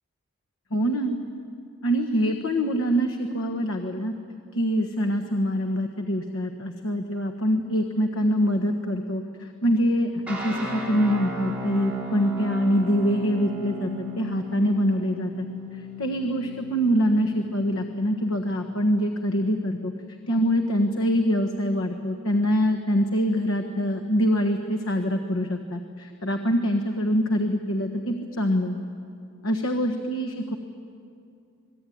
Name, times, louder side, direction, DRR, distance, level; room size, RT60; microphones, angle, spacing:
voice 1, 0.7-1.2 1.8-4.1 4.5-15.5 15.7-19.9 20.3-28.8 29.4-30.6, equal, 70° left, 5 dB, 1.4 m, -24 dB
sound 1, 10.3-18.5, equal, 5° right, 5.4 m, -36 dB
26.5 x 21.0 x 9.4 m, 2.5 s
head